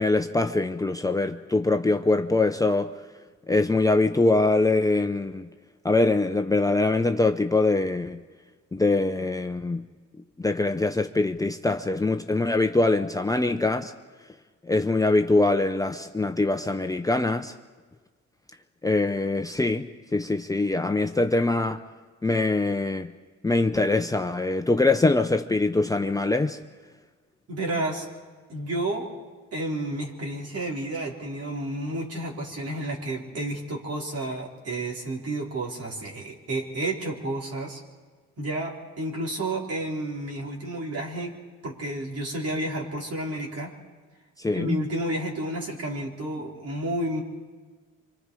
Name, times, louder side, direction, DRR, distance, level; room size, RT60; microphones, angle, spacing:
voice 1, 0.0-2.9 3.5-5.5 5.8-8.2 8.7-9.9 10.4-13.9 14.6-17.5 18.8-21.8 22.2-23.1 23.4-26.6 44.4-44.8, left 2 dB, 10° left, 6 dB, 0.8 m, -23 dB
voice 2, 27.5-28.1 28.5-29.1 29.5-37.8 38.4-41.4 41.6-43.7 44.5-47.2, right 1 dB, 50° right, -2 dB, 4.7 m, -31 dB
26.5 x 25.0 x 5.0 m, 1.4 s
cardioid pair, 90°, 30 cm